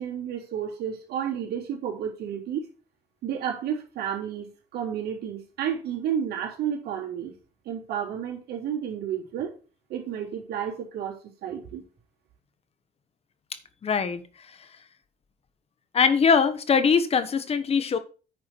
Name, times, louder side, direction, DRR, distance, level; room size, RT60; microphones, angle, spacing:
voice 1, 0.0-2.7 3.2-7.3 7.6-9.5 9.9-11.8, right 9 dB, 70° right, 3.4 m, -31 dB
voice 2, 13.8-14.2 15.9-18.0, left 6 dB, 35° left, 1.2 m, -22 dB
9.4 x 4.8 x 6.2 m
cardioid pair, 110°, 17 cm